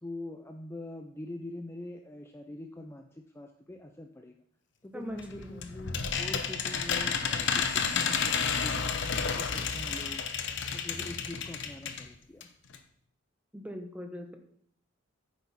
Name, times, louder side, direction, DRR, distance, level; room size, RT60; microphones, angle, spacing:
voice 1, 0.0-4.4 4.8-10.2 10.7-12.5, left 1 dB, 15° left, 4 dB, 0.5 m, -44 dB
voice 2, 4.9-5.7 13.5-14.4, equal, 5° right, 4 dB, 1.0 m, -41 dB
sound 1, 5.2-12.1 12.4-12.5 12.7-12.8, left 6 dB, 60° left, 0.8 m, -31 dB
9.2 x 7.2 x 4.2 m, 0.64 s
head